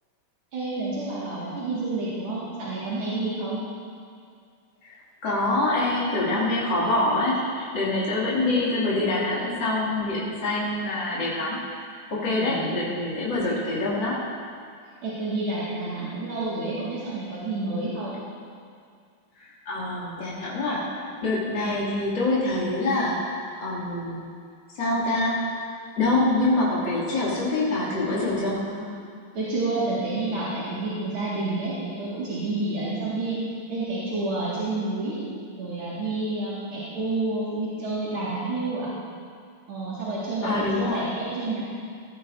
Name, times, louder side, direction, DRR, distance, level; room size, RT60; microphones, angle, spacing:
voice 1, 0.5-3.6 12.4-12.7 15.0-18.1 28.4-28.9 29.3-33.4 33.7-35.2 35.6-38.9 39.7-41.6, right 2 dB, 85° right, -9 dB, 3.1 m, -29 dB
voice 2, 5.2-11.6 12.1-14.2 19.4-24.2 24.7-25.4 26.0-28.6 40.4-41.1, left 2 dB, 60° left, -8 dB, 3.5 m, -25 dB
18.0 x 14.5 x 2.8 m, 2.2 s
omnidirectional pair, 2.3 m